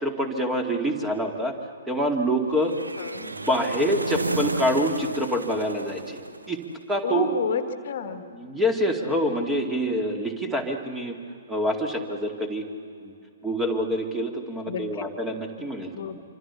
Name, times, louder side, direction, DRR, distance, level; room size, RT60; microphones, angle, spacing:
voice 1, 0.0-1.6 1.9-2.7 3.5-6.2 6.5-6.6 6.9-7.3 8.3-11.2 11.5-12.6 13.0-13.1 13.4-16.2, equal, 5° right, 3 dB, 2.3 m, -26 dB
sound 1, 2.6-6.8, right 3 dB, 80° right, 1.0 m, -32 dB
voice 2, 3.0-3.3 7.0-8.2 14.7-15.0 15.9-16.2, left 7 dB, 50° left, 8 dB, 1.5 m, -30 dB
26.5 x 25.5 x 7.1 m, 2.5 s
figure-of-eight pair, 120°, 0 cm